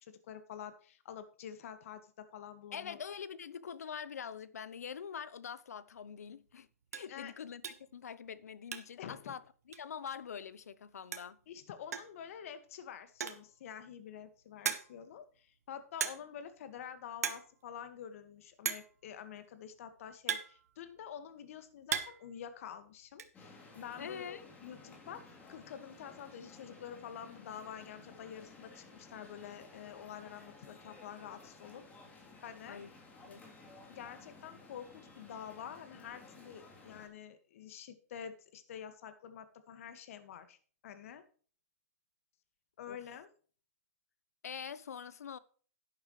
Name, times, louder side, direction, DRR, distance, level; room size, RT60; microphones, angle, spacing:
voice 1, 0.0-3.0 7.1-7.3 9.0-9.3 11.5-32.8 33.9-40.6 40.8-41.2 42.8-43.3, left 8 dB, 60° left, 1.8 m, -48 dB
voice 2, 2.7-6.7 6.9-11.4 24.0-24.4 32.7-32.9 33.2-33.5 42.9-43.0 44.4-45.4, left 7 dB, 80° left, 0.8 m, -44 dB
sound 1, 5.9-6.1 6.5-6.6 6.9-7.1 7.6-7.9 8.2-9.1 9.3-9.4 9.7-9.8 10.8-10.9 11.1-11.4 11.9-12.2 13.0-13.5 14.1-14.2 14.6-15.1 16.0-16.4 16.7-16.9 17.1-17.5 17.8-17.9 18.6-19.0 19.8-21.1 21.5-22.3 22.6-23.3, right 7 dB, 80° right, 1.5 m, -38 dB
sound 2, 23.3-37.1, left 3 dB, 15° left, 3.3 m, -56 dB
11.5 x 9.7 x 3.2 m
hypercardioid pair, 130°, 8 cm